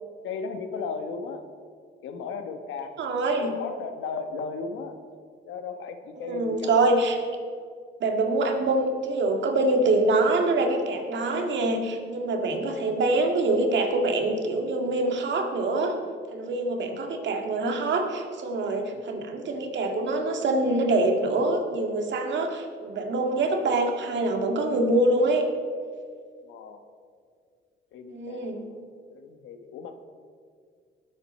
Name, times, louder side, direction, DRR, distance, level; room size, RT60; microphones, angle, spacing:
voice 1, 0.2-1.5 2.0-3.0 3.4-5.0 5.4-6.9 18.9-19.3 26.4-26.8 27.9-29.9, left 5 dB, 80° left, 7 dB, 1.2 m, -36 dB
voice 2, 3.0-3.5 6.2-7.2 8.0-15.9 16.3-25.5 28.1-28.6, right 2 dB, 65° right, 3 dB, 1.9 m, -25 dB
19.0 x 7.8 x 4.3 m, 2.1 s
cardioid pair, 90°, 20 cm